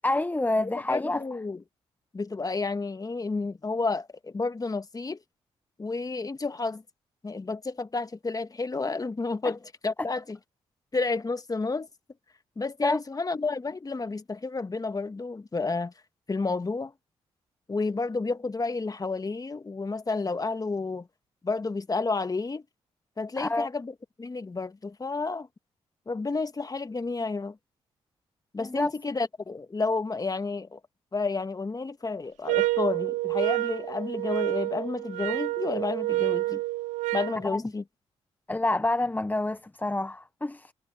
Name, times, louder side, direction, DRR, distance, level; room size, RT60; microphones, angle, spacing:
voice 1, 0.0-1.2 12.8-13.0 23.4-23.7 28.6-28.9 37.4-37.6 38.5-40.7, left 2 dB, 15° left, 0.8 m, -27 dB
voice 2, 0.6-1.6 2.1-5.2 5.8-6.8 7.2-10.4 10.9-11.9 12.6-15.9 16.3-16.9 17.7-21.1 21.4-22.6 23.2-25.5 26.1-27.6 28.5-30.8 31.1-36.6 37.1-37.8, left 3 dB, 30° left, 1.6 m, -31 dB
sound 1, 32.5-37.4, right 18 dB, 85° right, 0.5 m, -28 dB
supercardioid pair, 50°, 12 cm